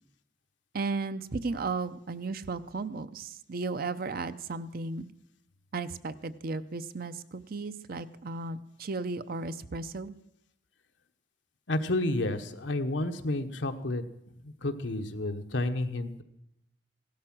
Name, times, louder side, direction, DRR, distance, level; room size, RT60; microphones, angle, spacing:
voice 1, 0.7-5.1 5.7-10.2, right 3 dB, 55° right, 12 dB, 0.7 m, -35 dB
voice 2, 11.7-14.0 14.4-16.2, left 2 dB, 90° left, 6 dB, 1.2 m, -30 dB
16.5 x 12.5 x 6.1 m, 0.78 s
head